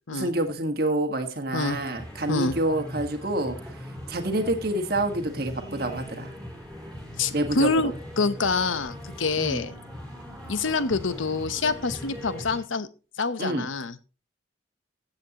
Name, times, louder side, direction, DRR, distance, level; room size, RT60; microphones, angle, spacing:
voice 1, 0.1-3.6 4.1-6.3 7.3-7.9 9.4-9.6 13.4-13.7, right 1 dB, 50° right, 5 dB, 1.5 m, -27 dB
sound 1, 1.6-12.6, equal, 5° left, 4.4 m, -40 dB
voice 2, 7.2-9.7 10.5-12.9 13.2-13.9, left 3 dB, 90° left, 13 dB, 0.9 m, -26 dB
15.5 x 8.1 x 2.9 m, 0.33 s
head